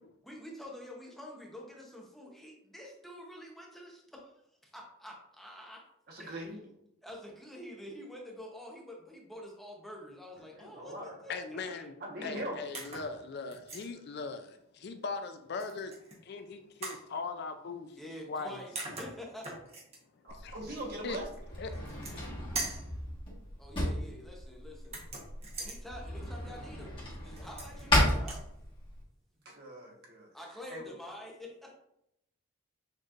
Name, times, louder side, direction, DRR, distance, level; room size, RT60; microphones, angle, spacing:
voice 1, 0.2-4.3 4.6-5.8 6.2-6.5 7.0-11.9 18.0-19.5 23.6-25.0 25.6-28.4 30.3-31.7, left 1 dB, ahead, -1 dB, 0.8 m, -47 dB
voice 2, 6.1-6.6 10.6-11.1 12.0-12.6 20.2-21.3 29.4-30.3 30.7-30.8, right 1 dB, 50° right, -1 dB, 1.2 m, -41 dB
voice 3, 11.3-11.9 12.2-16.0 16.2-18.0 18.3-18.6 20.2-20.6 21.0-21.2 21.6-21.7, left 4 dB, 50° left, 8 dB, 0.4 m, -39 dB
sound 1, 12.7-13.1 13.5-13.9 15.6-16.2 16.8-17.0 18.4-18.5 18.8-20.0 21.7-22.3 22.6-22.9 24.8-25.8 27.4-27.9 28.2-28.5, right 2 dB, 30° right, 1.0 m, -41 dB
Drawer open or close, 20.3-29.0, left 1 dB, 25° left, 1.4 m, -34 dB
6.4 x 3.1 x 2.5 m, 0.77 s
head